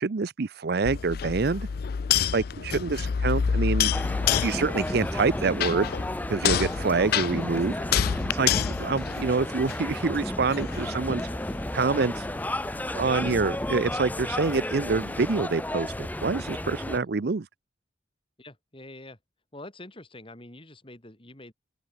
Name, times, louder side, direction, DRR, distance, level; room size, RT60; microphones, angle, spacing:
voice 1, 0.0-1.7 2.3-3.9 4.4-5.9 6.3-7.8 8.3-11.3 11.7-12.3 12.9-17.5, right 4 dB, 55° right, 0.6 m, -26 dB
sound 1, 0.8-10.0 10.5-15.4, left 8 dB, 55° left, 0.4 m, -29 dB
sound 2, 3.9-17.0, left 1 dB, 10° left, 0.8 m, -32 dB
voice 2, 18.4-19.2 19.5-21.5, left 1 dB, 30° left, 3.6 m, -46 dB
open air
head